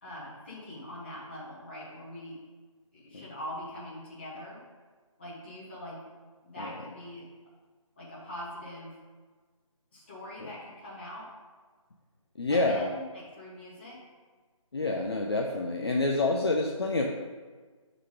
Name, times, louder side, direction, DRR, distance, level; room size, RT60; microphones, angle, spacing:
voice 1, 0.0-2.4 2.9-4.6 5.2-6.0 6.4-7.3 8.0-9.0 9.9-11.3 12.5-14.0, left 1 dB, 20° left, -7 dB, 1.3 m, -42 dB
voice 2, 12.4-12.9 14.7-17.1, left 2 dB, 45° left, 1 dB, 0.5 m, -27 dB
5.5 x 3.9 x 4.9 m, 1.5 s
figure-of-eight pair, 170°, 18 cm